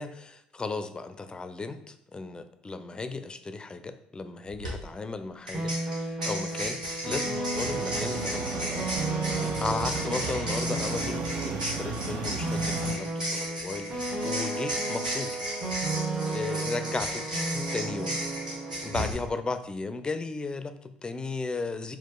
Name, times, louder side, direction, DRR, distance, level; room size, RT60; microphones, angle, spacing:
voice 1, 0.0-9.1 9.3-15.4 16.3-17.3 17.7-18.2 18.8-22.0, left 3 dB, 20° left, 9 dB, 0.4 m, -35 dB
sound 1, 4.5-4.7 5.5-19.1, equal, 90° right, 0.8 m, -35 dB
sound 2, 5.5-19.0, right 2 dB, 45° right, 1.4 m, -33 dB
sound 3, 7.5-13.0, right 4 dB, 60° right, 0.5 m, -35 dB
4.1 x 2.4 x 3.7 m, 0.76 s
figure-of-eight pair, 55°, 4 cm